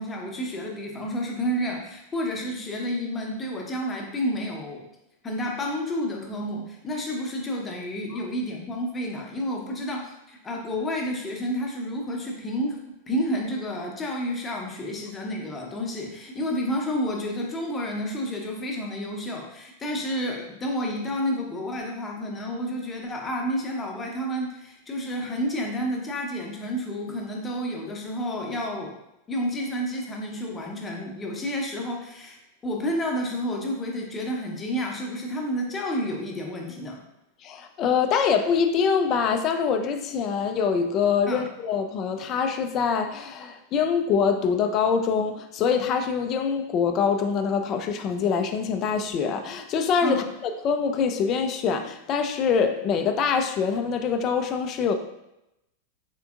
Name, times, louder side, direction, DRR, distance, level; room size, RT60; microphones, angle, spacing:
voice 1, 0.0-4.8 5.2-12.8 13.1-28.9 29.3-32.4 32.6-37.0 41.3-41.4 50.0-50.2, equal, 20° left, 0 dB, 0.8 m, -30 dB
voice 2, 37.4-55.0, left 6 dB, 35° left, 7 dB, 0.3 m, -24 dB
4.5 x 3.3 x 2.4 m, 0.87 s
figure-of-eight pair, 90°, 0 cm